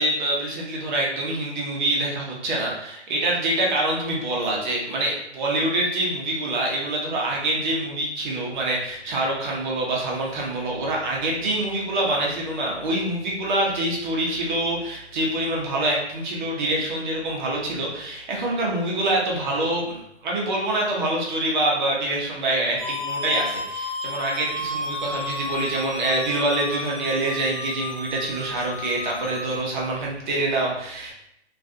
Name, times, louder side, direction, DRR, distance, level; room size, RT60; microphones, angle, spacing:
voice 1, 0.0-31.1, right 1 dB, 40° right, -2 dB, 0.7 m, -25 dB
sound 1, 22.8-29.6, left 2 dB, 5° right, 0.5 m, -33 dB
2.4 x 2.4 x 2.5 m, 0.77 s
hypercardioid pair, 140°, 36 cm